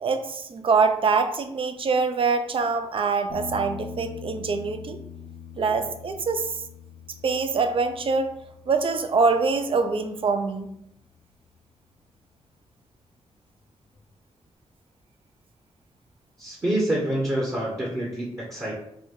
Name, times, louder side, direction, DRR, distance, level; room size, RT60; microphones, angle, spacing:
voice 1, 0.0-5.0 5.6-6.6 7.2-8.3 8.7-10.7, right 4 dB, 55° right, 8 dB, 0.4 m, -24 dB
sound 1, 3.3-10.9 13.9-14.0, left 6 dB, 90° left, 0.6 m, -43 dB
voice 2, 16.4-18.7, right 1 dB, 25° right, -4 dB, 0.9 m, -27 dB
3.9 x 2.2 x 3.1 m, 0.77 s
cardioid pair, 70°, 11 cm